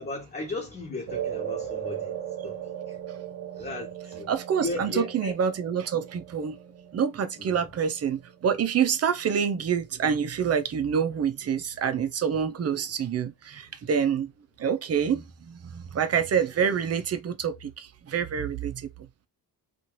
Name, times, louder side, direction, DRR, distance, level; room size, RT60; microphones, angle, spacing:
voice 1, 0.0-3.0 3.6-4.3 4.6-5.3 7.4-7.6, left 2 dB, 25° left, 1.0 m, -36 dB
sound 1, 1.1-9.6, right 9 dB, 75° right, 0.7 m, -38 dB
voice 2, 4.3-6.6 6.9-14.3 14.6-18.9, right 7 dB, 45° right, 0.5 m, -27 dB
2.8 x 2.4 x 3.0 m
cardioid pair, 125°, 36 cm